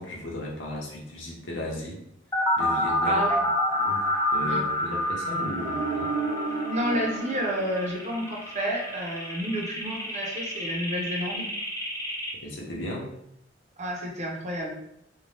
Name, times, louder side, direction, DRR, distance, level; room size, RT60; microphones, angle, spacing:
voice 1, 0.0-2.0 2.6-3.2 3.8-4.0 4.3-6.1 12.4-13.1, left 1 dB, 90° left, -2 dB, 0.8 m, -35 dB
sound 1, 2.3-12.3, left 1 dB, 15° left, 0.5 m, -28 dB
voice 2, 3.0-3.4 4.4-4.6 6.7-11.5 13.8-14.8, equal, 40° right, 0 dB, 0.6 m, -30 dB
sound 2, 5.6-8.6, right 4 dB, 90° right, 0.4 m, -33 dB
2.6 x 2.2 x 3.2 m, 0.77 s
head